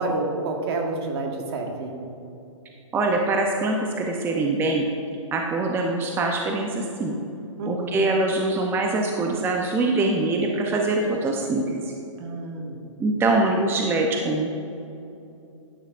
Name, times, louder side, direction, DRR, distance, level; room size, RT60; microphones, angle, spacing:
voice 1, 0.0-2.0 7.6-8.0 12.2-12.8, right 2 dB, 50° right, 2 dB, 1.5 m, -29 dB
voice 2, 2.9-4.9 5.3-7.2 7.7-11.9 13.0-14.5, right 2 dB, 15° right, 1 dB, 0.6 m, -23 dB
12.0 x 10.0 x 2.5 m, 2.7 s
hypercardioid pair, 130°, 17 cm